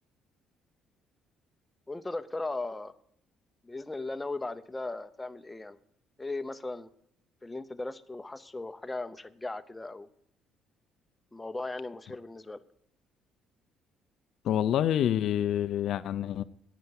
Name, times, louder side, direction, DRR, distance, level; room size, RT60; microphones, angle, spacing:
voice 1, 1.9-2.9 3.6-5.8 6.2-6.9 7.4-10.1 11.3-12.6, left 2 dB, 10° left, 0.7 m, -37 dB
voice 2, 14.4-16.4, left 10 dB, 65° left, 0.5 m, -27 dB
10.0 x 8.1 x 9.7 m
cardioid pair, 130°, 0 cm